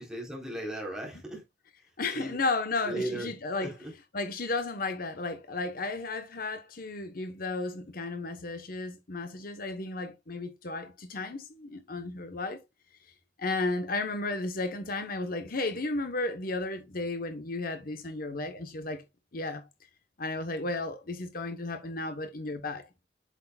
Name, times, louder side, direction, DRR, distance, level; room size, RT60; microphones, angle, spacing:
voice 1, 0.0-1.4 2.1-2.4 2.8-3.3 3.6-3.9, right 1 dB, 5° right, 4.0 m, -36 dB
voice 2, 2.0-3.7 4.1-12.6 13.4-19.0 19.3-19.7 20.2-23.1, left 3 dB, 55° left, 1.1 m, -33 dB
8.2 x 6.5 x 2.4 m
head